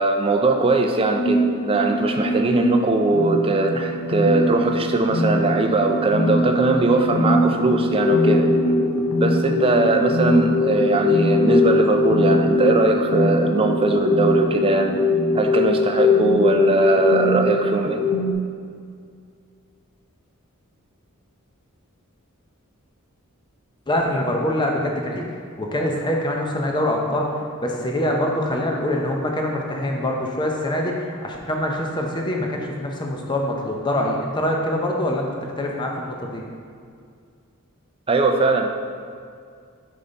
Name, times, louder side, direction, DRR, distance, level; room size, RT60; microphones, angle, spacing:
voice 1, 0.0-8.5 9.2-15.0 15.3-18.0 38.1-38.7, right 3 dB, 25° right, 4 dB, 0.4 m, -20 dB
sound 1, 1.0-18.3, left 2 dB, 80° left, 0.6 m, -21 dB
voice 2, 23.9-25.2 25.6-27.3 27.6-35.3 35.6-36.4, left 1 dB, 20° left, 0 dB, 0.6 m, -24 dB
5.3 x 5.3 x 3.9 m, 2.2 s
head